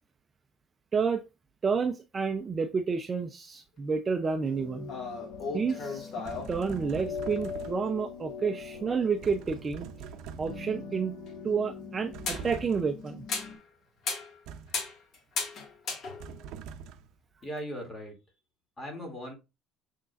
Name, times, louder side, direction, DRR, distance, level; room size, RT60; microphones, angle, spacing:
voice 1, 0.9-1.2 1.6-4.9 5.5-6.1 6.5-9.9 10.4-11.2 11.4-13.2, right 5 dB, 20° right, 0.5 m, -30 dB
sound 1, 4.4-13.5, left 5 dB, 65° left, 3.5 m, -42 dB
sound 2, 4.9-6.5 11.3-11.4 12.2-12.5 13.1-13.6 14.0-14.4 14.7-16.5, left 4 dB, 40° left, 1.9 m, -35 dB
sound 3, 6.2-8.0 9.2-10.8 12.1-13.0 14.5-14.9 16.2-17.2, right 7 dB, 60° right, 0.6 m, -43 dB
voice 2, 17.4-18.2 18.8-19.3, equal, 20° left, 2.5 m, -38 dB
6.7 x 6.4 x 2.5 m
cardioid pair, 180°, 0 cm